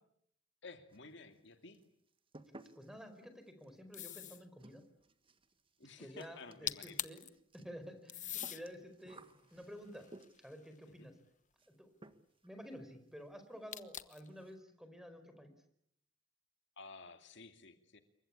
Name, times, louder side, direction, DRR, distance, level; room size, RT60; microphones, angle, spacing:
voice 1, 0.6-1.8 5.8-7.0 11.0-11.1 16.8-18.0, left 3 dB, 65° left, 8 dB, 2.5 m, -53 dB
sound 1, 0.9-1.5 1.7-10.6 11.6-11.8 12.0-12.5 12.8-12.9 13.2-13.3 13.6-13.8 14.1-14.6, right 2 dB, 25° right, 1.7 m, -60 dB
voice 2, 2.7-4.8 6.0-7.2 7.5-9.2 9.5-10.1 10.4-11.1 11.7-11.9 12.4-15.5, equal, ahead, 8 dB, 4.7 m, -51 dB
sound 2, 3.9-4.5 6.4-6.5 6.7-7.3 8.1-8.6 9.3-10.8 13.7-14.3, left 11 dB, 40° left, 1.1 m, -43 dB
28.0 x 24.0 x 8.6 m, 0.71 s
head